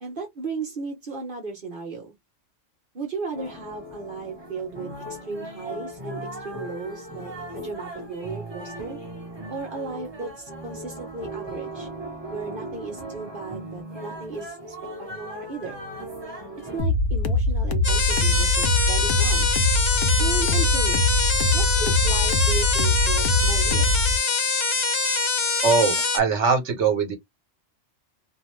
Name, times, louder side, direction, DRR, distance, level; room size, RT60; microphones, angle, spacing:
voice 1, 0.0-2.1 2.9-4.9 5.3-9.0 9.5-11.9 12.3-14.6 15.0-15.8 16.7-19.5 20.2-21.2 21.5-23.9, right 4 dB, 50° right, 1.0 m, -35 dB
sound 1, 3.3-16.8, right 1 dB, 25° right, 1.0 m, -38 dB
sound 2, 16.8-24.2, left 2 dB, 85° left, 1.0 m, -22 dB
sound 3, 17.8-26.2, left 4 dB, 40° left, 0.4 m, -24 dB
voice 2, 25.6-27.1, right 5 dB, 70° right, 1.2 m, -21 dB
2.5 x 2.3 x 3.1 m
omnidirectional pair, 1.3 m